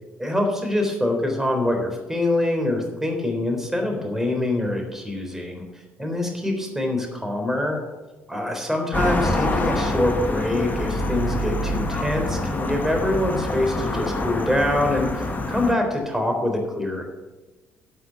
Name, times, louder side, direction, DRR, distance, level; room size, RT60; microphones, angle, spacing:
voice 1, 0.2-5.6 6.0-7.8 8.3-17.0, left 1 dB, 5° right, 3 dB, 3.8 m, -24 dB
sound 1, 8.9-15.7, left 1 dB, 30° left, 1.6 m, -26 dB
11.5 x 6.1 x 9.1 m, 1.2 s
figure-of-eight pair, 50°, 6 cm